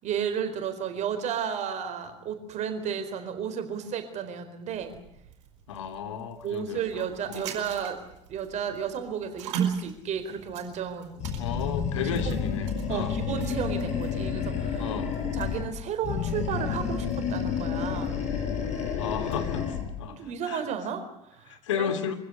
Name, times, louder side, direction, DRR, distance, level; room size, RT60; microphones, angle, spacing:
voice 1, 0.0-5.0 6.4-8.0 8.3-11.2 12.1-12.4 12.9-14.9 15.3-18.2 20.2-21.9, right 8 dB, 50° right, 8 dB, 4.3 m, -33 dB
sound 1, 4.7-19.6, right 8 dB, 70° right, 4.9 m, -40 dB
voice 2, 5.7-7.5 11.4-13.2 14.8-15.1 19.0-20.6 21.5-22.1, left 7 dB, 75° left, 8 dB, 2.8 m, -34 dB
Animal, 11.2-15.7 16.0-19.9, left 7 dB, 45° left, 7.7 m, -30 dB
25.0 x 16.0 x 9.7 m, 0.78 s
hypercardioid pair, 65°, 16 cm